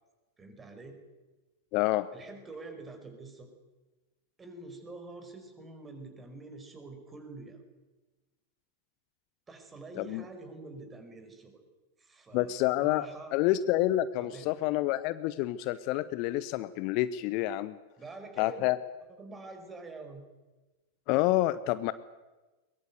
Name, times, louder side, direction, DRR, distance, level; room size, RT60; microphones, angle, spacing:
voice 1, 0.4-1.0 2.1-3.5 4.4-7.6 9.5-11.6 12.0-13.4 14.2-14.5 18.0-18.7 19.2-20.2, right 3 dB, 15° right, 7 dB, 5.1 m, -46 dB
voice 2, 1.7-2.1 10.0-10.2 12.3-13.1 13.3-17.8 18.4-18.8 21.1-21.9, left 15 dB, 45° left, 15 dB, 0.8 m, -28 dB
22.0 x 22.0 x 8.2 m, 1.2 s
figure-of-eight pair, 90°, 0 cm